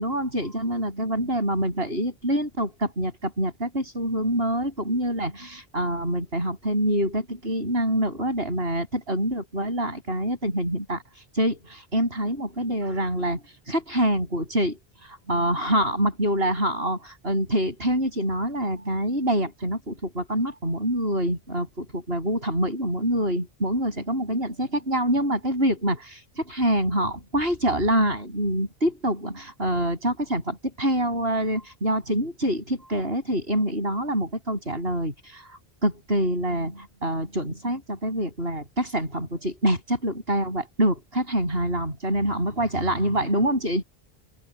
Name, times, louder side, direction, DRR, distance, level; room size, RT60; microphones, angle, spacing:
voice 1, 0.0-43.8, right 1 dB, 75° right, 8.0 m, -26 dB
open air
omnidirectional pair, 1.0 m